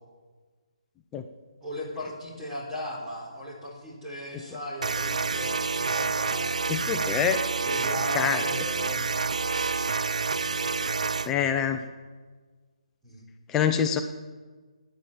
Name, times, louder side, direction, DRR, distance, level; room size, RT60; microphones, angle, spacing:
voice 1, 1.6-6.9 7.6-11.6 13.0-13.3, equal, 10° right, -5 dB, 4.3 m, -38 dB
sound 1, 4.8-11.3, right 4 dB, 85° right, 0.5 m, -28 dB
voice 2, 6.7-7.4 8.1-8.4 11.3-11.8 13.5-14.0, left 8 dB, 10° left, 6 dB, 0.7 m, -25 dB
17.0 x 10.0 x 7.5 m, 1.4 s
hypercardioid pair, 165°, 4 cm